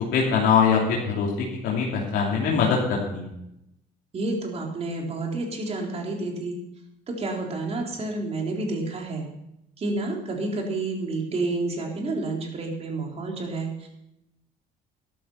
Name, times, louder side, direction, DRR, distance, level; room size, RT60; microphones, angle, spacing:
voice 1, 0.1-1.3 1.6-3.3, left 6 dB, 80° left, -3 dB, 3.0 m, -22 dB
voice 2, 4.1-6.6 7.1-9.3 9.8-13.9, right 2 dB, 40° right, 0 dB, 3.9 m, -29 dB
12.5 x 12.5 x 5.7 m, 0.83 s
cardioid pair, 110°, 17 cm